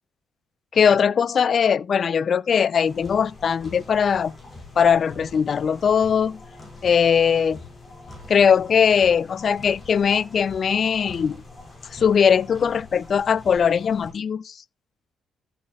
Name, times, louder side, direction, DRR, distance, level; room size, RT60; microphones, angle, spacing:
voice 1, 0.7-4.3 4.8-6.4 6.8-7.6 8.3-11.4 11.9-14.6, left 7 dB, 50° left, 0.4 m, -20 dB
sound 1, 2.8-14.1, left 2 dB, 30° left, 6.5 m, -44 dB
14.0 x 7.8 x 2.4 m
cardioid pair, 90°, 0 cm